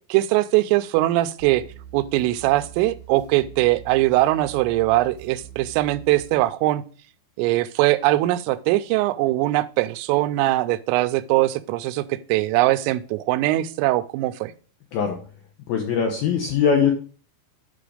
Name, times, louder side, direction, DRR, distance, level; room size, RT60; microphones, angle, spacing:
voice 1, 0.1-1.6 1.9-6.8 7.4-14.5, right 17 dB, 90° right, 12 dB, 3.2 m, -21 dB
sound 1, 1.4-6.4, right 11 dB, 50° right, 3.3 m, -44 dB
voice 2, 15.7-16.9, left 7 dB, 75° left, 2 dB, 2.2 m, -21 dB
8.5 x 5.0 x 4.9 m, 0.39 s
omnidirectional pair, 5.7 m